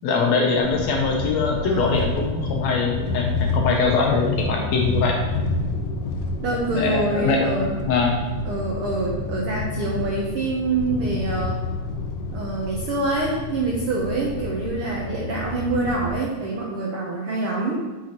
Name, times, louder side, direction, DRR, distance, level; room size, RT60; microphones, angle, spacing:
voice 1, 0.0-5.2 6.7-8.2, left 4 dB, 75° left, 0 dB, 1.8 m, -22 dB
sound 1, 0.6-16.1, left 3 dB, 90° left, 2.2 m, -29 dB
voice 2, 1.6-2.0 6.4-7.8 8.4-11.6 12.3-17.8, right 3 dB, 80° right, -2 dB, 1.2 m, -26 dB
8.6 x 5.8 x 2.9 m, 1.2 s
omnidirectional pair, 3.6 m